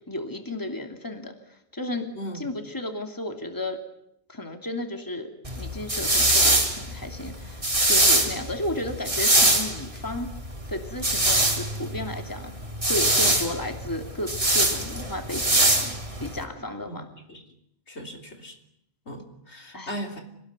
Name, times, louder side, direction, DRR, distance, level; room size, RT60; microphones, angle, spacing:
voice 1, 0.1-3.8 4.3-10.3 10.7-12.5 12.8-17.1 19.7-19.9, left 1 dB, 15° left, 4 dB, 2.8 m, -33 dB
voice 2, 2.1-2.5 16.9-17.0 17.3-17.4 17.9-18.5 19.1-20.2, equal, 75° left, 3 dB, 3.7 m, -37 dB
sound 1, 5.4-16.4, right 1 dB, 30° right, 3.3 m, -23 dB
27.5 x 19.5 x 9.6 m, 0.77 s
omnidirectional pair, 1.2 m